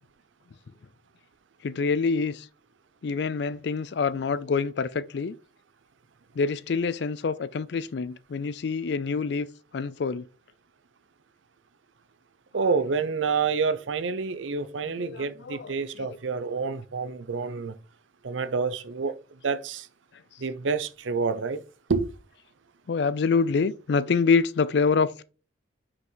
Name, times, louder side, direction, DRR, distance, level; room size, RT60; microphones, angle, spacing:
voice 1, 1.6-2.5 3.0-5.3 6.4-9.5 9.7-10.3 12.6-12.7 15.0-16.2 22.9-25.2, left 5 dB, 60° left, 0.4 m, -26 dB
voice 2, 12.5-17.8 18.2-19.2 19.4-19.9 20.4-21.6 21.9-22.1, right 5 dB, 90° right, 0.6 m, -28 dB
6.1 x 5.0 x 3.9 m
head